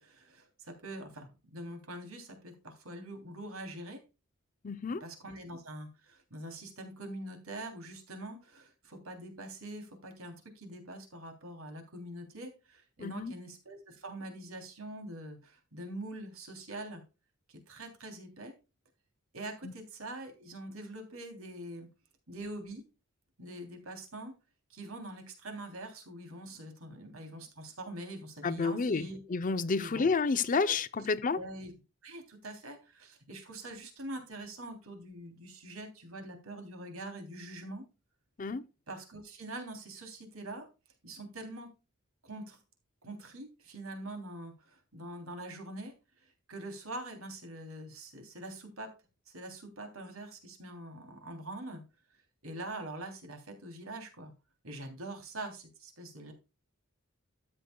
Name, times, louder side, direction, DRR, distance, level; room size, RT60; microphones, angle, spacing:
voice 1, 0.0-4.0 5.0-17.0 17.5-18.5 19.3-21.9 22.3-22.8 23.4-24.3 24.7-29.2 29.8-30.1 30.7-31.1 31.3-31.7 32.0-37.8 38.9-40.7 41.0-41.7 42.2-42.6 43.0-45.9 46.2-48.9 49.3-51.8 52.4-54.3 54.6-56.3, right 1 dB, 85° right, 3.2 m, -44 dB
voice 2, 4.6-5.0 13.0-13.3 19.6-19.7 28.4-31.4 38.4-38.6, left 4 dB, 40° left, 0.5 m, -30 dB
13.0 x 8.0 x 2.3 m
head